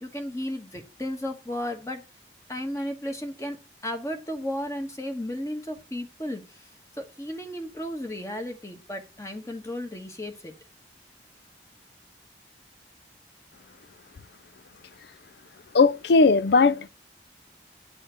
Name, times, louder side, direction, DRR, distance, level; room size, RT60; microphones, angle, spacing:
voice 1, 0.0-2.0 2.5-3.6 3.8-6.4 7.0-10.5, left 1 dB, 15° left, 1.3 m, -34 dB
voice 2, 15.7-16.9, left 4 dB, 65° left, 0.4 m, -18 dB
9.4 x 4.4 x 6.2 m
head